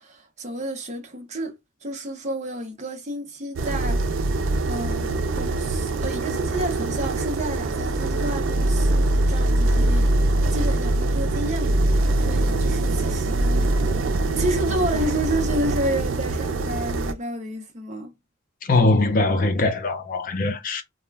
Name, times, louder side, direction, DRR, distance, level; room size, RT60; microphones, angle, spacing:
voice 1, 0.0-1.5 1.8-4.1 4.7-10.1 10.5-11.8 12.2-13.8 14.3-18.1, right 1 dB, 35° right, 0.6 m, -30 dB
sound 1, 3.6-17.1, right 2 dB, 80° right, 0.4 m, -23 dB
voice 2, 18.6-20.8, left 2 dB, 45° left, 0.5 m, -21 dB
2.3 x 2.1 x 3.2 m
head